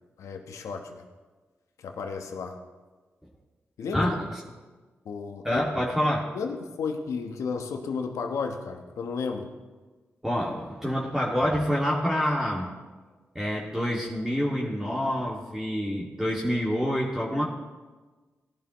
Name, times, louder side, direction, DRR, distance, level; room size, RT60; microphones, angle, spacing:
voice 1, 0.2-1.0 1.8-2.6 3.8-4.2 5.0-5.6 6.0-9.5, left 5 dB, 90° left, 4 dB, 1.1 m, -33 dB
voice 2, 3.9-4.3 5.4-6.3 10.2-12.7 13.3-17.5, equal, 5° right, -4 dB, 2.3 m, -27 dB
17.5 x 11.0 x 3.1 m, 1.3 s
cardioid pair, 45°, 5 cm